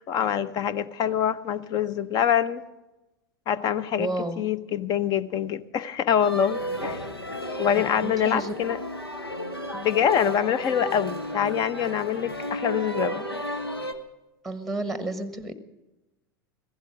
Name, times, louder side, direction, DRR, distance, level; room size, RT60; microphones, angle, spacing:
voice 1, 0.0-2.6 3.5-4.1 4.4-7.0 7.6-8.8 9.7-13.3, left 9 dB, 30° left, 18 dB, 0.8 m, -25 dB
voice 2, 4.0-4.5 7.7-8.5 14.4-15.5, right 1 dB, ahead, 11 dB, 1.2 m, -31 dB
sound 1, 6.2-13.9, equal, 85° left, 1.4 m, -33 dB
16.0 x 15.5 x 5.0 m, 1.0 s
figure-of-eight pair, 85°, 12 cm